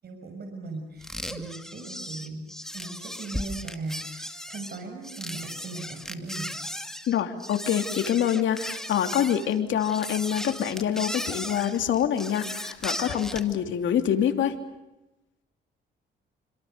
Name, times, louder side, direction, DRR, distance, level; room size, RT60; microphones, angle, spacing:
voice 1, 0.0-2.4 2.7-6.5, right 3 dB, 55° right, 4 dB, 6.1 m, -38 dB
sound 1, 1.0-13.5, equal, ahead, 2.4 m, -36 dB
voice 2, 7.1-14.5, left 9 dB, 75° left, 7 dB, 3.1 m, -26 dB
28.0 x 26.5 x 6.8 m, 0.98 s
cardioid pair, 90°, 20 cm